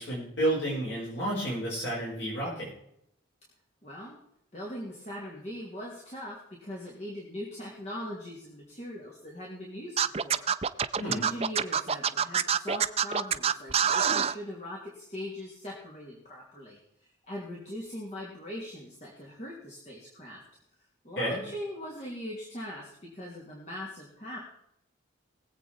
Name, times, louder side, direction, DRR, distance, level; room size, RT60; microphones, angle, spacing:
voice 1, 0.0-2.7 11.0-11.2 21.2-21.4, right 1 dB, 60° left, -6 dB, 5.0 m, -31 dB
voice 2, 3.8-4.2 4.5-10.0 10.2-10.5 10.7-16.8 17.3-20.4 21.0-24.4, left 1 dB, 35° left, -3 dB, 2.9 m, -40 dB
Scratching (performance technique), 10.0-14.3, right 7 dB, 30° right, 0.5 m, -25 dB
21.5 x 8.2 x 4.4 m, 0.76 s
head